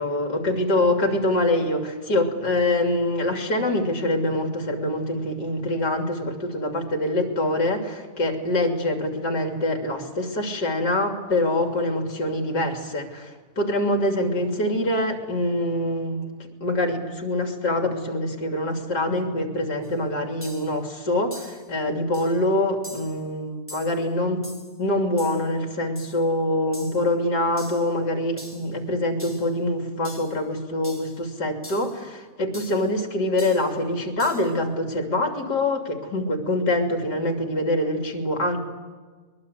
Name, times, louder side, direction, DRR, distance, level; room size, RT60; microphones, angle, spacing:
voice 1, 0.0-16.3 16.6-24.4 24.8-38.6, left 1 dB, 65° left, 3 dB, 3.6 m, -25 dB
sound 1, 19.8-19.9 20.4-20.8 21.3-21.7 22.1-22.4 22.8-23.2 23.7-24.0 24.4-24.8 25.2-25.5 26.0-26.2 26.7-27.1 27.6-27.9 28.4-28.7 29.2-29.5 30.0-30.4 30.8-31.2 31.6-32.0 32.5-32.9 33.4-33.7 34.2-34.5, left 1 dB, 5° left, 4.0 m, -43 dB
22.5 x 22.0 x 8.2 m, 1.4 s
omnidirectional pair, 1.9 m